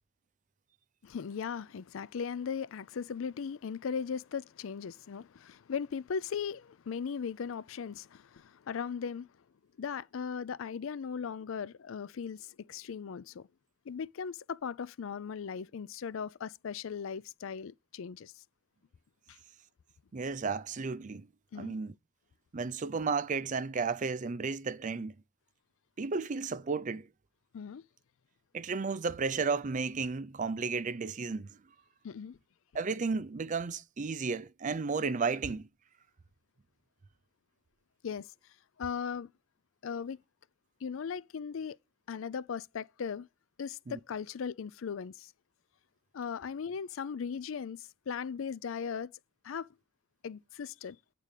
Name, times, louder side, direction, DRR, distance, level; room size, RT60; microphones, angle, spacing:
voice 1, 1.0-9.3 9.8-13.5 13.9-18.4 19.3-19.4 21.5-21.7 27.5-27.8 32.0-32.4 38.0-38.3 38.8-39.3 39.8-40.2 40.8-41.8 42.1-43.3 43.6-45.3 46.1-49.1 49.4-49.7 50.2-51.0, left 6 dB, 70° left, 0.4 m, -38 dB
voice 2, 20.1-21.3 21.6-21.9 22.5-25.1 26.0-27.1 28.5-31.6 32.7-35.7 43.9-44.0, right 4 dB, 40° right, 0.5 m, -33 dB
8.9 x 3.8 x 6.6 m
head